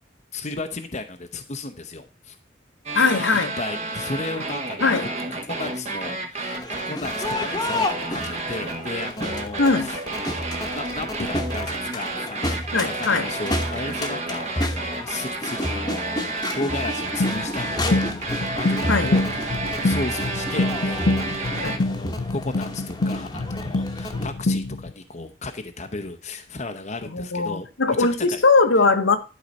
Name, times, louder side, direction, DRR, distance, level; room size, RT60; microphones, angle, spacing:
voice 1, 0.3-2.4 3.3-5.1 5.5-10.0 10.7-18.1 18.6-21.3 21.6-28.4, left 3 dB, 35° left, 0.7 m, -34 dB
voice 2, 2.9-3.5 4.8-5.0 9.6-9.9 12.7-13.3 18.9-19.1 21.6-21.8 27.0-29.2, left 4 dB, 80° left, 1.1 m, -20 dB
sound 1, 2.9-21.8, right 2 dB, 35° right, 1.2 m, -31 dB
Crowd, 6.5-24.3, left 1 dB, 20° left, 1.1 m, -31 dB
sound 2, 17.2-24.9, left 2 dB, 65° left, 0.6 m, -26 dB
11.5 x 4.0 x 5.3 m
head